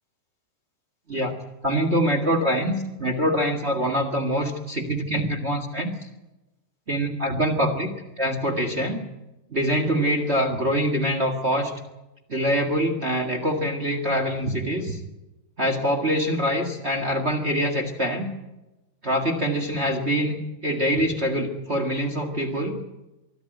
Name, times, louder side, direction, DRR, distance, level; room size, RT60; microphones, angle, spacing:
voice 1, 1.6-5.9 6.9-9.0 9.5-11.7 12.3-15.0 15.6-18.3 19.0-22.8, equal, 55° right, 3 dB, 0.7 m, -24 dB
24.5 x 13.5 x 9.2 m, 1.0 s
omnidirectional pair, 4.5 m